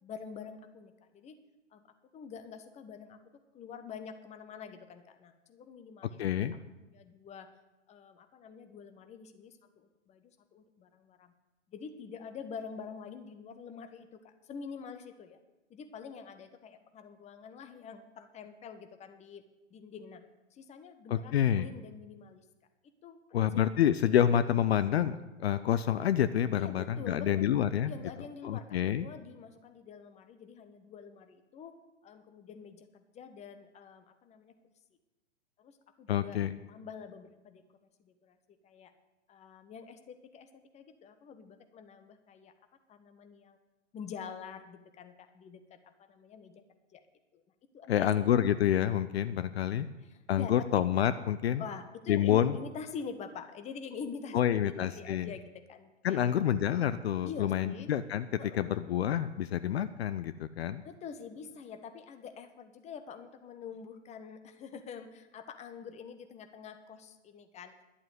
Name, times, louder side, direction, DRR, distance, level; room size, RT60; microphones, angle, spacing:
voice 1, 0.0-1.4 1.7-1.8 2.1-3.2 3.5-6.5 6.9-7.5 7.9-11.3 11.7-15.4 15.7-19.4 19.7-20.2 20.5-22.4 23.0-23.5 26.5-27.5 27.8-31.7 32.0-34.5 35.6-36.4 36.7-37.6 38.0-38.9 39.3-40.5 40.7-42.5 42.9-43.6 43.9-45.8 46.1-46.6 46.9-47.0 47.3-47.4 47.7-48.1 49.8-50.8 51.6-55.4 55.7-56.2 57.2-57.9 58.4-58.8 60.8-67.8, left 6 dB, 20° left, 9 dB, 1.1 m, -46 dB
voice 2, 6.2-6.5 21.1-21.7 23.3-27.9 28.4-29.1 36.1-36.6 47.9-49.9 50.3-51.6 52.1-52.6 54.3-55.3 56.0-58.3 58.5-60.8, left 10 dB, 60° left, 13 dB, 0.7 m, -28 dB
11.5 x 7.6 x 9.4 m, 1.1 s
figure-of-eight pair, 115°, 36 cm